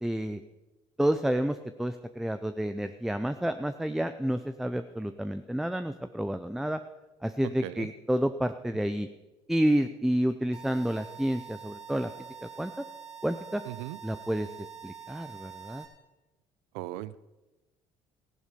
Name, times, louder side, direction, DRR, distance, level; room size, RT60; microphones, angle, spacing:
voice 1, 0.0-0.4 1.0-6.8 7.2-9.1 9.5-12.1 12.4-12.7 13.2-13.6 14.0-14.5 14.8-15.8, right 1 dB, 5° right, 10 dB, 0.6 m, -29 dB
sound 1, 10.5-15.8, right 8 dB, 50° right, 2.8 m, -46 dB
voice 2, 13.7-14.0 16.7-17.2, right 15 dB, 80° right, 18 dB, 0.5 m, -37 dB
15.0 x 11.0 x 5.3 m, 1.1 s
hypercardioid pair, 60°, 13 cm